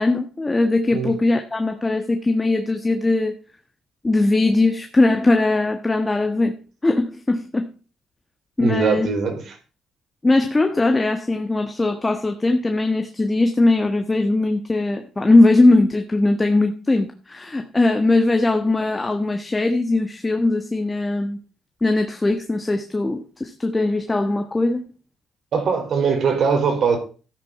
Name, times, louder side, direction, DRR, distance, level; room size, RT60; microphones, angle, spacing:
voice 1, 0.0-3.4 4.0-6.6 6.8-7.7 8.6-9.1 10.2-21.4 21.8-24.8, left 2 dB, 20° left, 1.5 m, -20 dB
voice 2, 8.6-9.6 25.5-27.0, right 5 dB, 65° right, 4.8 m, -21 dB
13.5 x 9.7 x 4.3 m
cardioid pair, 90°, 0 cm